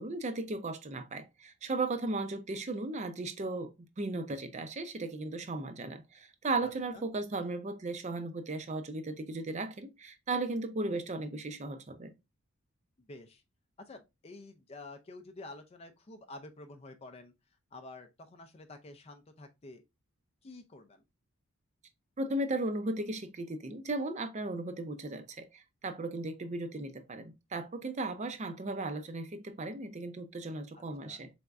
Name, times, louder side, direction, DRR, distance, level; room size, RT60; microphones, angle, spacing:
voice 1, 0.0-12.1 22.2-31.3, right 2 dB, 30° right, 0.5 m, -36 dB
voice 2, 6.6-7.1 13.1-13.4 13.9-17.3 17.7-19.8 20.4-21.0 31.0-31.2, left 2 dB, 30° left, 0.4 m, -49 dB
4.2 x 3.4 x 2.4 m
head